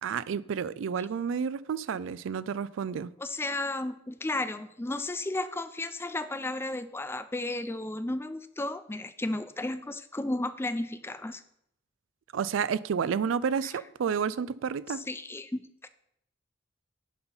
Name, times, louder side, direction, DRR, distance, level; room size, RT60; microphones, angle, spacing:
voice 1, 0.0-3.1 12.3-15.0, right 6 dB, 75° right, 0.4 m, -30 dB
voice 2, 3.2-11.4 13.6-13.7 14.9-15.9, left 2 dB, 10° left, 0.4 m, -33 dB
10.5 x 4.4 x 5.4 m
head